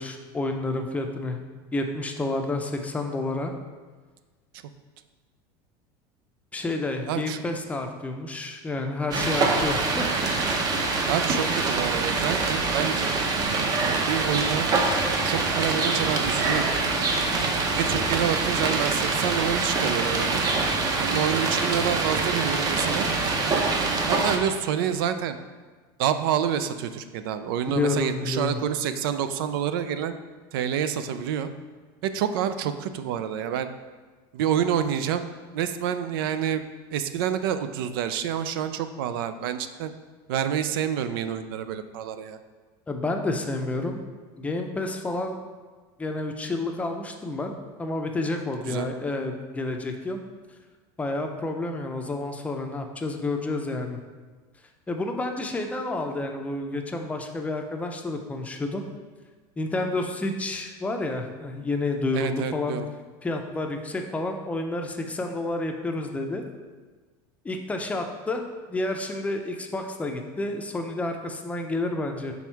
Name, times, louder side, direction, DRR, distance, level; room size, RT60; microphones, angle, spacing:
voice 1, 0.0-1.4 1.7-3.5 6.5-10.4 27.7-28.6 42.9-44.0 44.4-45.4 46.0-50.2 51.0-54.0 54.9-58.9 59.6-62.8 63.2-66.4 67.4-68.4 68.7-72.3, left 2 dB, 10° left, 3 dB, 0.5 m, -30 dB
voice 2, 7.1-7.4 11.1-13.1 13.8-14.7 15.2-16.7 17.7-20.4 21.0-23.1 24.1-25.4 26.0-30.1 30.5-31.5 32.0-33.7 34.3-35.3 35.5-36.6 36.9-39.9 40.3-42.4 48.6-48.9 62.1-62.9, right 9 dB, 90° right, 11 dB, 0.4 m, -28 dB
sound 1, 9.1-24.4, right 3 dB, 35° right, 0.7 m, -25 dB
6.1 x 3.5 x 4.5 m, 1.4 s
supercardioid pair, 140°, 12 cm